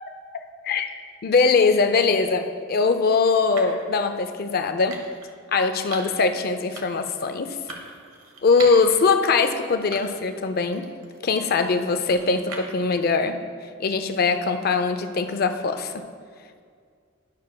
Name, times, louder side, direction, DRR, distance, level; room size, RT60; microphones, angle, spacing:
voice 1, 1.2-5.0 5.5-7.6 8.4-10.9 11.2-13.4 13.8-16.0, left 4 dB, 45° left, 8 dB, 0.4 m, -21 dB
sound 1, 2.3-2.5 3.6-3.9 4.9-5.3 5.9-6.2 6.7-7.1 7.7-9.0 9.4-9.5 9.9-10.4 10.7-12.9, right 3 dB, 80° right, 1.1 m, -40 dB
12.0 x 6.3 x 2.2 m, 2.1 s
head